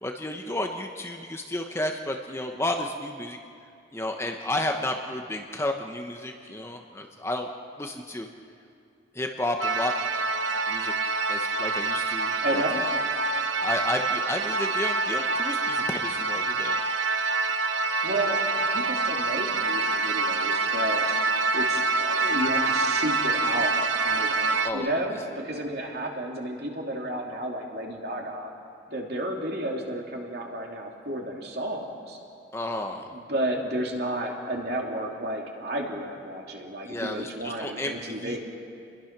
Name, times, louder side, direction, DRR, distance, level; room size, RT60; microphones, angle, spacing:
voice 1, 0.0-3.4 3.9-7.5 7.8-8.3 9.1-9.9 10.7-10.9 11.3-12.8 13.6-16.8 24.6-24.9 32.5-33.1 36.8-38.4, left 1 dB, 15° left, 3 dB, 1.1 m, -32 dB
sound 1, 9.6-24.7, right 3 dB, 85° right, 1.1 m, -26 dB
voice 2, 12.4-12.8 17.7-21.2 21.5-23.8 24.0-28.5 28.9-32.2 33.1-38.4, right 1 dB, 55° right, 0 dB, 3.0 m, -32 dB
29.0 x 22.0 x 6.1 m, 2.4 s
head